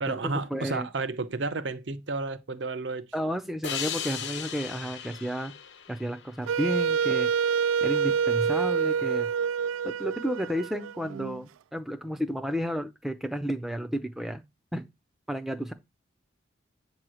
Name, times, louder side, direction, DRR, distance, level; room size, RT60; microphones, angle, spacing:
voice 1, 0.0-3.1, right 3 dB, 65° right, 0.7 m, -31 dB
voice 2, 0.5-0.9 3.1-5.5 5.9-7.3 7.8-9.3 9.8-14.4 14.7-14.8 15.3-15.7, equal, ahead, 0.4 m, -32 dB
sound 1, 3.6-6.9, left 8 dB, 60° left, 1.0 m, -37 dB
Wind instrument woodwind instrument, 6.5-11.4, right 7 dB, 90° right, 0.3 m, -27 dB
8.5 x 3.0 x 6.2 m
head